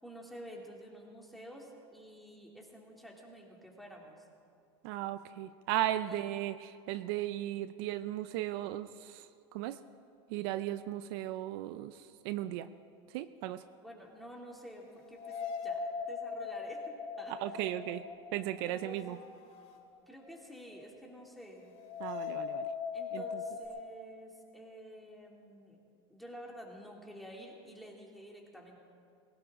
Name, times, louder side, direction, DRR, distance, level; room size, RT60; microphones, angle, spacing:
voice 1, 0.0-4.2 6.1-6.3 13.8-15.3 15.6-17.3 18.7-19.2 20.1-21.7 22.9-25.8 26.1-28.8, equal, ahead, -2 dB, 2.8 m, -50 dB
voice 2, 4.8-9.8 10.3-12.7 13.1-13.6 17.3-18.0 18.3-19.2 22.0-22.7 23.1-23.4, right 13 dB, 65° right, 12 dB, 0.5 m, -36 dB
sound 1, 14.1-14.2 15.0-20.0 20.3-20.4 21.7-23.7, left 6 dB, 50° left, 2.5 m, -40 dB
20.0 x 17.0 x 3.7 m, 2.5 s
supercardioid pair, 120°, 14 cm